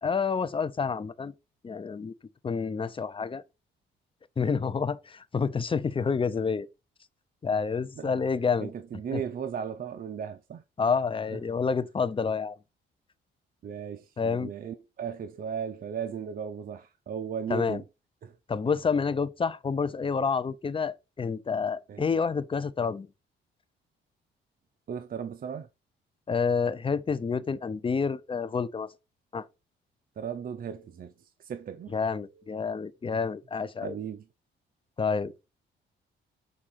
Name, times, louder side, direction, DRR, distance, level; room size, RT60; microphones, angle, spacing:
voice 1, 0.0-1.3 1.6-2.1 2.4-3.4 4.4-6.7 7.4-8.7 9.1-9.2 10.8-12.6 14.2-14.5 17.5-17.8 18.5-23.1 26.3-28.9 29.3-29.5 31.9-33.9 35.0-35.4, left 5 dB, 25° left, 0.6 m, -28 dB
voice 2, 8.6-10.6 11.3-11.4 13.6-17.8 18.2-18.3 21.9-22.1 24.9-25.7 30.2-32.0 33.8-34.2, right 7 dB, 45° right, 0.6 m, -36 dB
6.4 x 3.6 x 5.7 m
cardioid pair, 90°, 20 cm